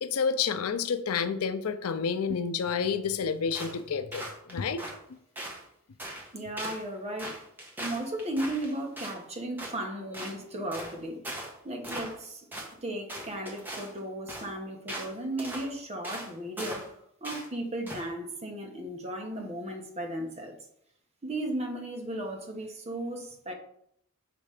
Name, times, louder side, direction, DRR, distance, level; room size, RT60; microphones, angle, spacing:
voice 1, 0.0-4.8, left 6 dB, 85° left, 11 dB, 0.5 m, -29 dB
sound 1, 3.5-3.8 4.1-5.0 5.4-5.6 6.0-6.3 6.6-6.8 7.2-9.2 9.6-9.8 10.1-10.4 10.7-10.9 11.2-11.5 11.8-12.2 12.5-12.7 13.1-13.9 14.3-14.5 14.9-15.1 15.4-15.7 16.0-16.3 16.6-16.9 17.2-17.5 17.9-18.1, right 1 dB, 10° right, 1.1 m, -39 dB
voice 2, 6.3-7.4 7.8-11.2 11.6-12.5 12.8-16.9 17.2-20.5 21.2-23.5, right 1 dB, 30° right, 2 dB, 1.0 m, -35 dB
5.9 x 3.2 x 4.9 m, 0.71 s
head